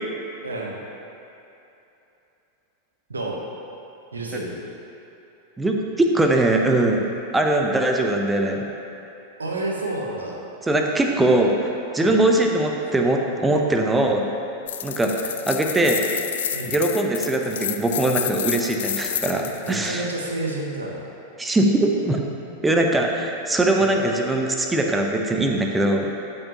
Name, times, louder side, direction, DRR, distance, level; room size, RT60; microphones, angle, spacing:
voice 1, 0.4-0.8 3.1-3.4 4.1-4.6 9.4-10.4 12.0-12.2 16.5-16.7 19.6-21.0 23.7-24.0, right 2 dB, 75° right, -1 dB, 1.1 m, -30 dB
voice 2, 5.6-7.0 7.3-8.7 10.7-14.2 14.8-16.1 16.7-20.0 21.4-22.2 22.6-26.1, right 1 dB, 10° right, 2 dB, 0.7 m, -21 dB
sound 1, 14.7-19.8, left 10 dB, 60° left, 0.3 m, -30 dB
12.0 x 5.6 x 2.9 m, 2.9 s
figure-of-eight pair, 90°, 0 cm